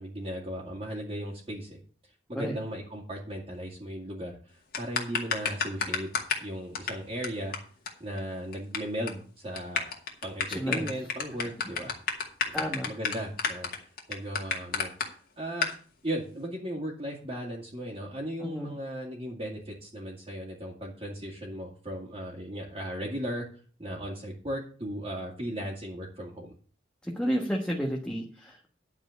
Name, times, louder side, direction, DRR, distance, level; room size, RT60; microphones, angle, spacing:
voice 1, 0.0-1.8 2.3-6.1 6.4-7.5 8.0-10.0 10.2-11.9 12.8-13.7 14.1-14.9 15.4-23.5 23.8-26.5, equal, 30° right, -5 dB, 2.4 m, -36 dB
sound 1, 4.7-6.5 6.7-6.9 7.2-7.3 7.5-7.6 7.9-8.0 8.2-8.8 9.1-9.2 9.6-15.1 15.6-15.7, left 6 dB, 55° left, 2.1 m, -29 dB
voice 2, 10.5-10.9 12.5-12.9 18.4-18.7 27.0-28.7, equal, 5° left, -1 dB, 1.4 m, -31 dB
11.0 x 4.9 x 8.2 m, 0.41 s
head